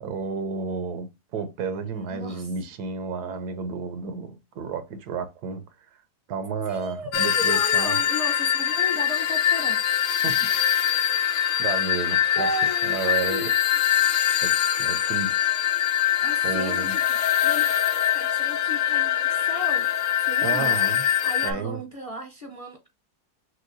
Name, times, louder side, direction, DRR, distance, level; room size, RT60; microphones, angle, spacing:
voice 1, 0.0-5.6 6.3-8.0 10.2-10.5 11.6-12.5 12.8-13.5 14.4-14.5 14.8-15.6 16.4-17.0 20.4-21.1 21.4-21.8, right 5 dB, 80° right, 1.3 m, -31 dB
voice 2, 1.9-2.5 6.7-9.8 10.4-10.6 11.4-11.6 12.3-13.5 16.2-17.7 18.1-19.9 20.2-20.8 21.2-22.9, left 1 dB, 30° left, 0.7 m, -35 dB
sound 1, 7.1-21.5, left 10 dB, 65° left, 0.9 m, -23 dB
6.2 x 2.3 x 2.6 m
omnidirectional pair, 1.7 m